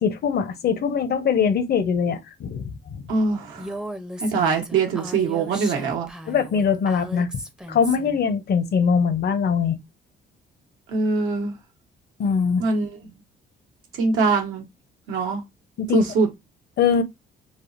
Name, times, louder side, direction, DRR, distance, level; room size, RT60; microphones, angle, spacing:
voice 1, 0.0-3.0 6.3-7.3 7.7-9.8 12.2-12.6 15.8-16.1 16.8-17.0, left 6 dB, 55° left, 0.6 m, -22 dB
voice 2, 3.1-3.7 4.2-6.1 10.9-11.5 12.6-13.0 14.0-14.7 15.1-15.4 15.9-16.3, right 4 dB, 90° right, 1.0 m, -22 dB
Female speech woman speaking, 3.6-8.2, equal, 5° right, 0.5 m, -36 dB
3.4 x 2.1 x 2.4 m
cardioid pair, 90°, 20 cm